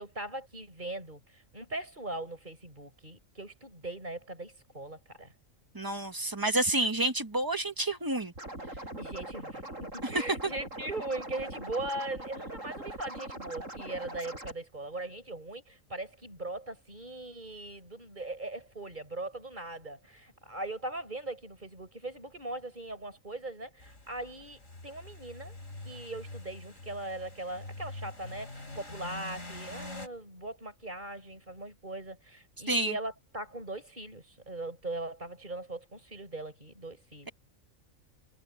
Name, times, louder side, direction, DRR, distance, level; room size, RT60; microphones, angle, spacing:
voice 1, 0.0-5.3 6.8-6.9 9.0-25.6 25.8-37.3, right 2 dB, 35° right, 7.1 m, -40 dB
voice 2, 5.7-8.3 10.0-10.1 32.7-33.0, right 2 dB, 15° right, 1.6 m, -29 dB
Scratching (performance technique), 8.3-14.5, right 1 dB, 65° right, 8.4 m, -42 dB
sound 1, 23.8-30.1, left 2 dB, 65° left, 4.8 m, -45 dB
omnidirectional pair, 1.4 m